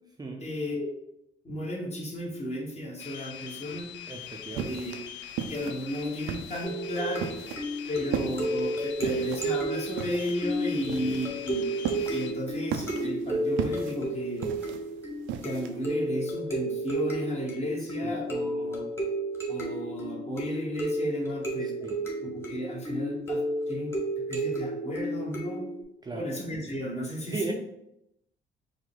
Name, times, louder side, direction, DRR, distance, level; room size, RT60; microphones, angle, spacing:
voice 1, 0.4-0.9 1.4-3.9 4.6-5.0 5.5-7.4 7.9-11.7 12.1-14.6 15.4-18.9 19.5-21.7 22.3-25.7 26.1-27.5, left 1 dB, 35° left, -1 dB, 1.3 m, -34 dB
sound 1, 3.0-12.3, left 9 dB, 70° left, 0.4 m, -43 dB
voice 2, 4.1-4.8 8.0-8.1 11.0-11.2 18.0-18.1 21.6-22.0 26.0-26.3 27.3-27.5, right 3 dB, 20° right, 1 dB, 0.5 m, -37 dB
sound 2, 4.1-15.8, right 8 dB, 80° right, 0.5 m, -37 dB
sound 3, 6.6-25.8, right 1 dB, 10° left, 1.3 m, -32 dB
4.7 x 2.2 x 3.8 m, 0.80 s
cardioid pair, 90°, 20 cm